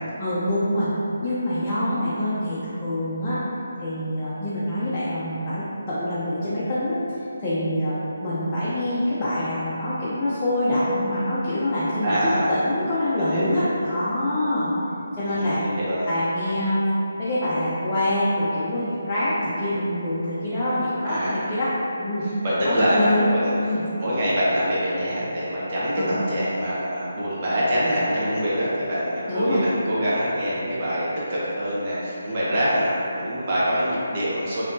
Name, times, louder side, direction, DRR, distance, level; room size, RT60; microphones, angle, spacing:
voice 1, 0.2-0.9 1.2-3.4 3.8-7.0 7.4-12.2 12.5-14.7 15.1-15.6 16.1-16.8 17.2-21.7 22.0-22.2 22.6-23.3 23.6-23.8 26.0-26.1 29.3-29.6, left 1 dB, 15° left, -13 dB, 0.6 m, -25 dB
voice 2, 12.0-12.5 13.2-13.6 15.4-16.1 21.0-21.4 22.4-23.5 24.0-34.6, equal, 30° right, -9 dB, 1.0 m, -24 dB
4.1 x 2.9 x 2.7 m, 2.8 s
figure-of-eight pair, 160°, 0 cm